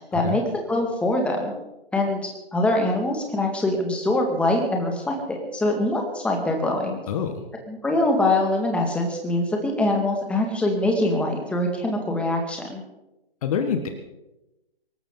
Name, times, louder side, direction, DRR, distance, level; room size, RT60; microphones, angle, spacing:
voice 1, 0.1-1.5 1.9-2.2 2.5-7.0 7.7-12.8, left 1 dB, 5° left, 1 dB, 2.2 m, -23 dB
voice 2, 7.1-7.4 13.4-13.9, left 7 dB, 35° left, 7 dB, 1.6 m, -26 dB
24.5 x 13.5 x 4.0 m, 0.95 s
figure-of-eight pair, 140°, 30 cm